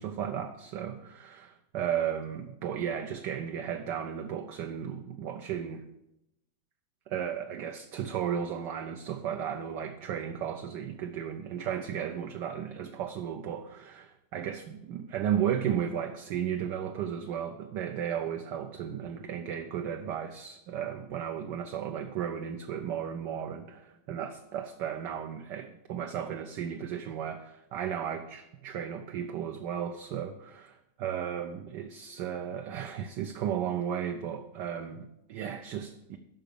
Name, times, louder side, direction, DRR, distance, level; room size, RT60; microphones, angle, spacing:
voice 1, 0.0-5.8 7.1-36.2, right 9 dB, 70° right, 5 dB, 1.1 m, -34 dB
11.5 x 6.0 x 6.8 m, 0.92 s
omnidirectional pair, 2.3 m